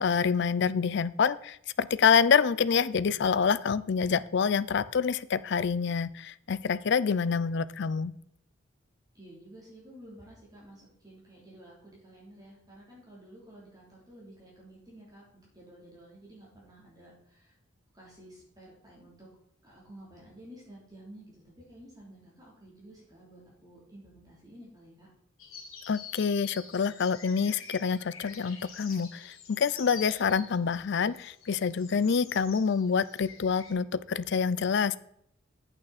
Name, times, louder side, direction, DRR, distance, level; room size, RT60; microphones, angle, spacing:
voice 1, 0.0-8.1 25.9-35.0, left 6 dB, 55° left, 16 dB, 0.4 m, -27 dB
voice 2, 9.1-17.5 17.9-19.3 19.6-21.4 21.7-25.1, right 1 dB, 20° right, -4 dB, 3.2 m, -52 dB
sound 1, 25.4-33.7, left 5 dB, 85° left, 2.4 m, -48 dB
8.9 x 8.7 x 4.1 m, 0.72 s
head